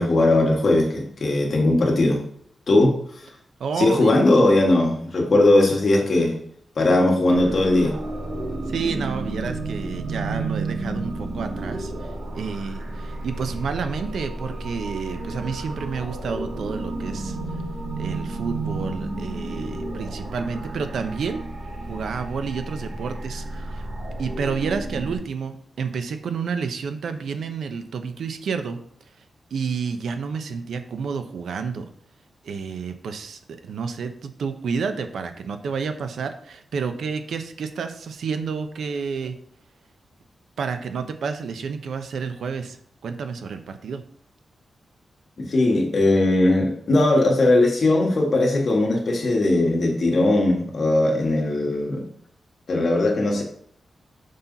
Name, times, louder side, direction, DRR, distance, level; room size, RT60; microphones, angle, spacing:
voice 1, 0.0-2.2 2.7-3.0 3.8-6.4 6.8-8.0 45.4-52.0 52.7-53.4, left 2 dB, 45° left, 0 dB, 1.8 m, -19 dB
voice 2, 3.6-4.1 8.7-12.1 12.3-17.4 18.0-21.4 21.9-23.8 24.2-28.8 29.5-31.9 32.4-39.4 40.6-42.8 43.0-44.0, right 5 dB, 80° right, 8 dB, 0.8 m, -30 dB
sound 1, 7.3-25.2, right 2 dB, 55° right, 2.1 m, -32 dB
6.6 x 5.7 x 4.0 m, 0.62 s
wide cardioid pair, 165°, 0 cm